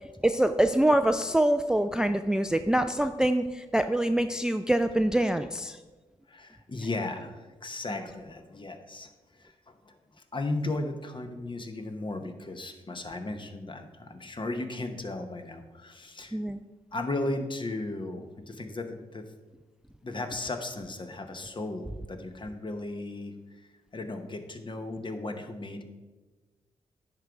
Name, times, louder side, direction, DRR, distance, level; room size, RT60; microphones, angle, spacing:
voice 1, 0.2-5.8 16.3-16.6, right 1 dB, 5° right, 9 dB, 0.3 m, -25 dB
voice 2, 6.3-16.4 16.9-19.2 20.0-25.8, left 2 dB, 35° left, 6 dB, 1.0 m, -36 dB
10.5 x 3.9 x 4.6 m, 1.2 s
supercardioid pair, 50°, 14 cm